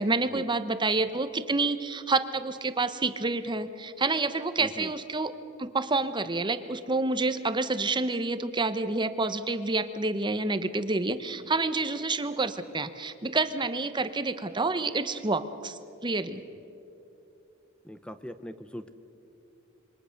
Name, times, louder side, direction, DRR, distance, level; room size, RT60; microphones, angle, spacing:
voice 1, 0.0-5.3 5.6-16.4, right 3 dB, 25° right, 11 dB, 0.9 m, -28 dB
voice 2, 4.6-4.9 17.8-18.9, equal, 5° left, 11 dB, 0.7 m, -40 dB
27.0 x 23.5 x 6.6 m, 2.9 s
head